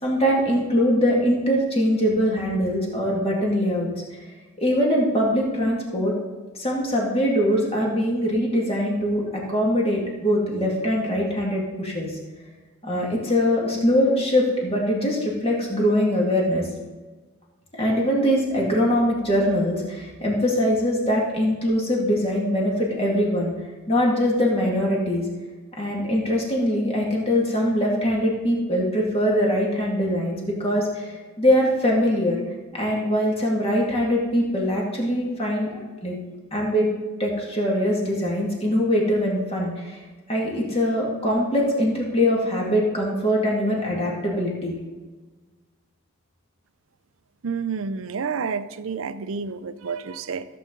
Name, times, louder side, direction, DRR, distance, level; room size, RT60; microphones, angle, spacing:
voice 1, 0.0-3.9 4.2-6.1 6.5-12.2 12.8-16.7 17.7-23.5 23.9-25.2 25.8-32.4 32.7-36.2 36.5-36.9 37.2-40.0 40.3-44.8, equal, 25° left, -2 dB, 2.1 m, -22 dB
voice 2, 47.4-50.5, right 5 dB, 65° right, 13 dB, 0.5 m, -29 dB
14.5 x 7.7 x 3.9 m, 1.3 s
head